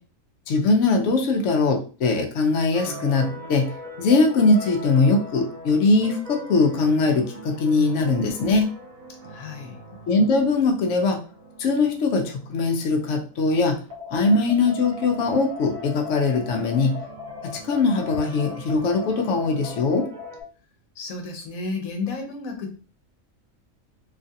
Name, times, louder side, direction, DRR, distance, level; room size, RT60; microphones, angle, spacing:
voice 1, 0.5-3.7 4.0-8.7 10.1-11.2 11.6-13.8 14.1-17.0 17.7-20.1, left 3 dB, 70° left, 3 dB, 0.9 m, -21 dB
sound 1, 2.7-20.4, left 2 dB, 75° right, 1.4 m, -39 dB
voice 2, 9.3-9.8 21.0-22.8, left 3 dB, 85° left, 3 dB, 1.2 m, -32 dB
3.2 x 2.4 x 2.6 m, 0.36 s
omnidirectional pair, 1.4 m